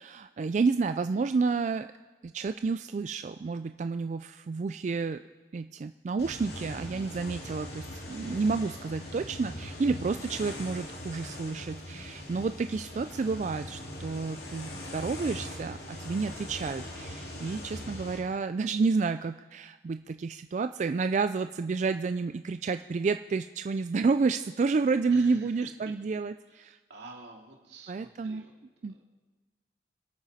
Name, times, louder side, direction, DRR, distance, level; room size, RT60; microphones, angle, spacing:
voice 1, 0.0-1.9 2.2-5.2 5.5-26.8 27.9-28.4 28.8-29.0, right 4 dB, 40° right, 10 dB, 0.3 m, -30 dB
sound 1, 6.2-18.2, left 1 dB, 60° left, 2.5 m, -41 dB
voice 2, 6.8-7.1 17.3-17.4 25.1-25.7 26.5-26.6 26.9-28.6 28.8-29.0, right 2 dB, 80° right, 0 dB, 2.6 m, -49 dB
26.5 x 9.0 x 4.2 m, 1.3 s
head